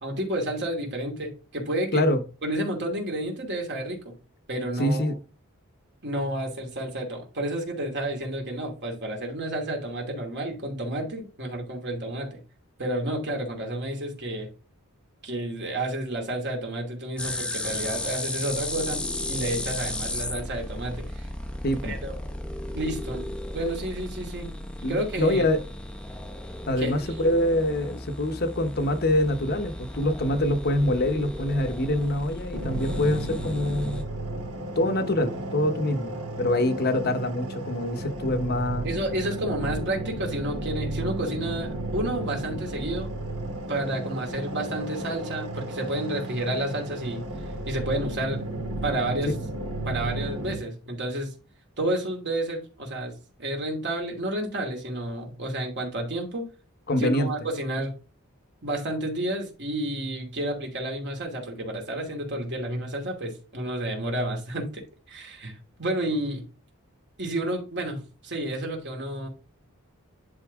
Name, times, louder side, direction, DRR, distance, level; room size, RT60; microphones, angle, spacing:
voice 1, 0.0-2.0 2.4-4.2 4.5-5.1 6.0-12.4 12.8-14.5 15.2-19.0 19.3-21.3 21.8-22.2 22.7-23.3 23.5-24.5 24.9-25.5 26.8-27.3 38.8-43.1 43.7-47.3 47.7-48.4 48.8-49.3 49.9-51.3 51.8-53.1 53.4-56.5 57.0-57.9 58.6-64.8 65.1-66.4 67.2-69.3, right 1 dB, 50° right, 2.7 m, -30 dB
voice 2, 4.8-5.2 21.6-22.0 24.8-25.6 26.7-34.1 34.8-38.9 49.3-49.4 56.9-57.3, left 1 dB, 45° left, 0.9 m, -25 dB
sound 1, 17.2-34.0, left 1 dB, 5° left, 0.7 m, -35 dB
sound 2, 32.5-50.5, right 1 dB, 85° right, 3.1 m, -33 dB
10.5 x 4.0 x 3.6 m
head